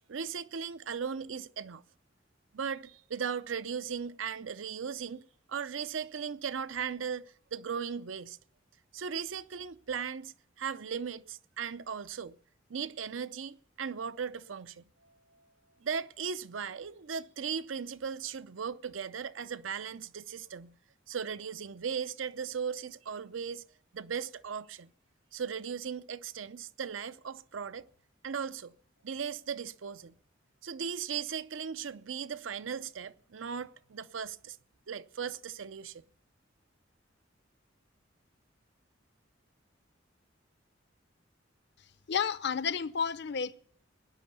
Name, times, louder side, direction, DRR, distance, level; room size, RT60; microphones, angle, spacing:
voice 1, 0.1-1.8 2.5-5.2 5.5-8.4 8.9-12.4 12.7-14.8 15.8-20.8 21.1-23.6 23.9-24.9 25.3-27.8 28.2-28.7 29.0-30.1 30.6-34.6 34.9-36.0, right 6 dB, 85° right, 0.6 m, -37 dB
voice 2, 42.1-43.5, left 6 dB, 60° left, 0.7 m, -31 dB
18.0 x 10.5 x 6.9 m
head